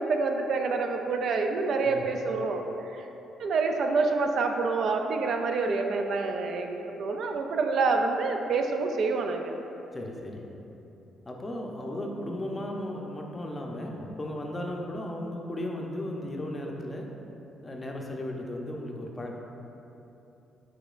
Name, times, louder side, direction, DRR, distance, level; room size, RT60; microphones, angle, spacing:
voice 1, 0.0-2.6 2.9-3.1 3.4-9.5, right 4 dB, 65° right, 4 dB, 0.3 m, -27 dB
voice 2, 9.9-10.5 11.2-17.1 17.6-19.4, left 1 dB, 25° left, 0 dB, 0.5 m, -35 dB
4.8 x 4.4 x 2.4 m, 3.0 s
cardioid pair, 90°, 0 cm